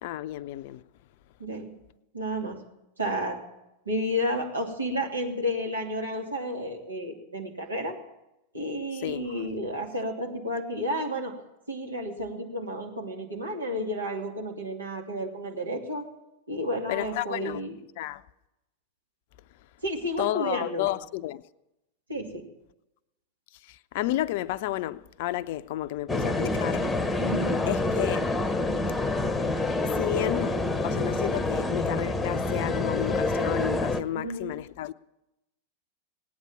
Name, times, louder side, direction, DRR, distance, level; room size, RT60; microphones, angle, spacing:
voice 1, 0.0-0.8 9.0-9.4 16.9-17.6 18.0-18.2 20.2-21.4 23.7-26.8 27.7-28.2 29.8-34.9, left 14 dB, 50° left, 0.6 m, -31 dB
voice 2, 2.1-2.6 3.0-3.4 3.9-8.0 8.5-11.3 11.7-16.1 16.5-17.8 19.8-20.9 22.1-22.5 27.2-27.6 34.1-34.5, equal, 80° right, 2.8 m, -31 dB
sound 1, 26.1-34.0, left 2 dB, 10° left, 1.0 m, -27 dB
18.5 x 9.7 x 7.4 m
figure-of-eight pair, 90°, 0 cm